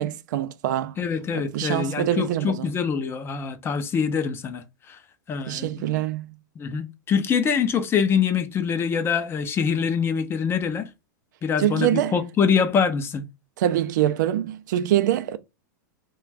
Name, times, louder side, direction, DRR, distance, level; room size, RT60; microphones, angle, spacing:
voice 1, 0.0-1.0 1.3-2.7 5.5-6.3 11.6-12.1 13.6-15.4, right 12 dB, 70° right, 0.4 m, -24 dB
voice 2, 1.0-5.0 5.3-5.9 6.6-10.9 11.4-13.3, left 6 dB, 25° left, 0.4 m, -24 dB
2.4 x 2.2 x 3.2 m
hypercardioid pair, 115°, 10 cm